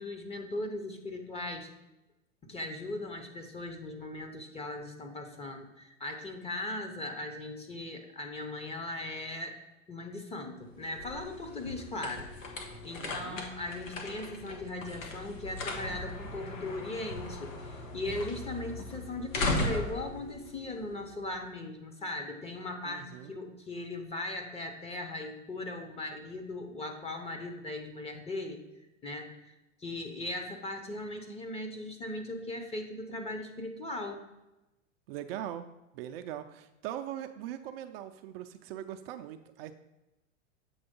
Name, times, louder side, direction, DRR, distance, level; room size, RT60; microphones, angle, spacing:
voice 1, 0.0-1.7 2.4-9.6 9.9-12.5 12.8-28.6 29.0-29.5 29.8-34.2, left 2 dB, 15° left, 4 dB, 0.9 m, -38 dB
sound 1, 10.6-21.4, left 2 dB, 85° left, 1.4 m, -38 dB
voice 2, 13.0-13.4 22.8-23.3 35.1-39.7, right 11 dB, 50° right, 7 dB, 0.5 m, -41 dB
7.9 x 3.3 x 5.3 m, 0.98 s
hypercardioid pair, 110°, 38 cm